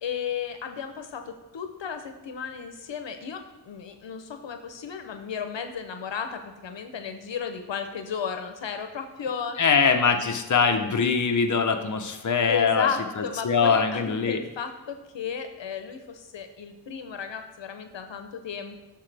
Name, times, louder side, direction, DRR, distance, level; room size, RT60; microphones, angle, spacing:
voice 1, 0.0-9.6 12.5-18.8, left 7 dB, 75° left, 7 dB, 0.8 m, -34 dB
voice 2, 9.6-12.9 13.4-14.4, left 5 dB, 40° left, 5 dB, 0.8 m, -22 dB
11.5 x 6.7 x 3.4 m, 1.1 s
wide cardioid pair, 85°, 44 cm